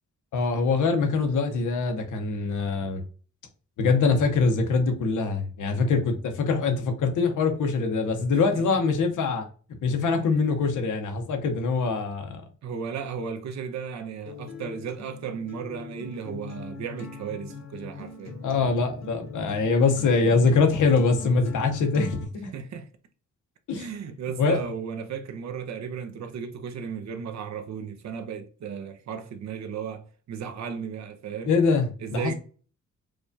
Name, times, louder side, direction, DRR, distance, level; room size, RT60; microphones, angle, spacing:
voice 1, 0.3-3.0 3.8-9.5 9.8-12.4 18.4-22.5 23.7-23.9 24.4-24.6 31.5-31.8 32.1-32.3, left 4 dB, 85° left, 0.9 m, -23 dB
voice 2, 8.3-8.8 12.6-18.4 22.5-22.9 23.7-31.6 32.0-32.3, right 7 dB, 65° right, 0.7 m, -35 dB
Acoustic guitar, 14.3-22.2, left 3 dB, 60° left, 0.9 m, -41 dB
4.8 x 2.3 x 2.6 m
wide cardioid pair, 155°, 30 cm